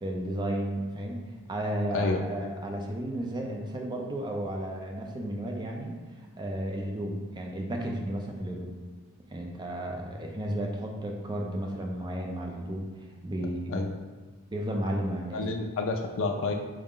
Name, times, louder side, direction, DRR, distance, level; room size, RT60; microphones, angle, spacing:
voice 1, 0.0-6.0 6.4-8.7 9.3-12.9 13.2-13.8 14.5-15.4, right 1 dB, 20° right, 1 dB, 0.4 m, -33 dB
voice 2, 15.3-16.5, left 3 dB, 60° left, 3 dB, 0.3 m, -29 dB
4.6 x 2.0 x 3.6 m, 1.3 s
head